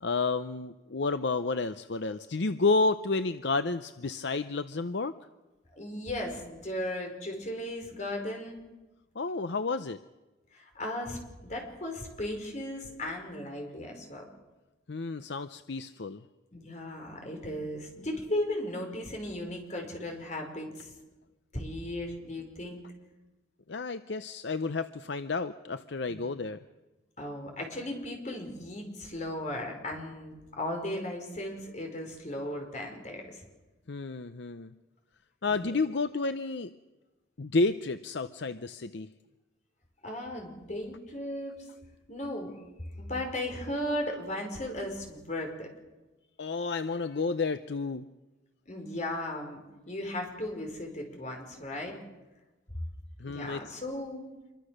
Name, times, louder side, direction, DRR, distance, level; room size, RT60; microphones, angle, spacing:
voice 1, 0.0-5.1 9.1-10.0 14.9-16.2 23.7-26.6 33.9-34.7 35.4-36.7 37.4-39.1 46.4-48.0 53.2-53.6, left 3 dB, 65° left, 11 dB, 0.7 m, -31 dB
voice 2, 5.8-8.6 10.5-14.2 16.5-20.9 21.5-22.8 26.1-26.2 27.2-33.4 35.5-35.7 40.0-41.6 42.1-42.5 42.8-45.7 48.7-52.0 53.3-54.2, left 1 dB, 40° left, 2 dB, 5.3 m, -36 dB
26.5 x 23.5 x 6.6 m, 1.1 s
head